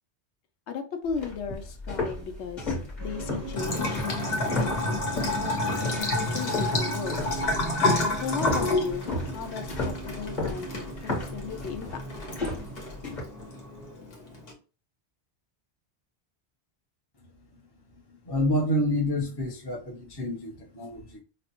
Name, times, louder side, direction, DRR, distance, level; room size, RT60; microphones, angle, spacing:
voice 1, 0.7-4.3 4.6-4.8 5.4-7.1 8.2-10.7 11.3-12.0, left 6 dB, 80° left, 0.9 m, -35 dB
sound 1, 1.1-5.4 5.8-6.1 6.5-13.2, left 2 dB, 45° left, 1.1 m, -33 dB
sound 2, 3.0-13.9, right 4 dB, 20° right, 0.6 m, -42 dB
Bathtub (filling or washing) / Trickle dribble, 3.6-14.5, left 2 dB, 65° left, 1.1 m, -30 dB
voice 2, 18.3-21.2, left 1 dB, 30° left, 0.6 m, -28 dB
5.0 x 2.1 x 2.8 m
omnidirectional pair, 1.1 m